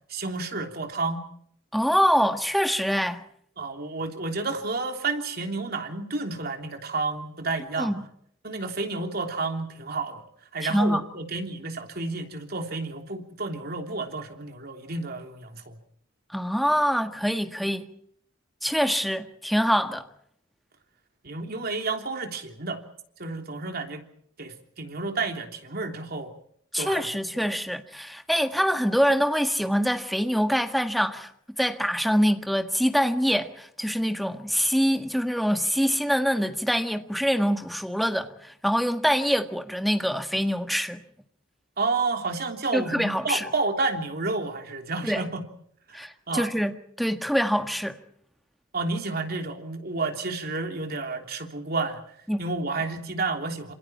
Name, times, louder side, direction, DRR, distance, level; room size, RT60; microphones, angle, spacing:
voice 1, 0.1-1.2 3.6-7.9 8.4-10.2 10.5-15.8 21.2-22.8 23.2-24.0 24.4-26.3 26.8-27.0 27.3-27.4 41.8-45.4 45.9-46.5 48.7-52.0 52.4-53.7, right 3 dB, 50° right, 3.3 m, -30 dB
voice 2, 1.7-3.2 7.8-8.0 10.6-11.0 16.3-17.8 18.6-20.1 26.7-31.3 31.6-41.0 42.7-43.5 45.0-45.3 45.9-48.0 52.3-52.4, equal, ahead, 1.6 m, -25 dB
27.5 x 27.5 x 4.4 m
head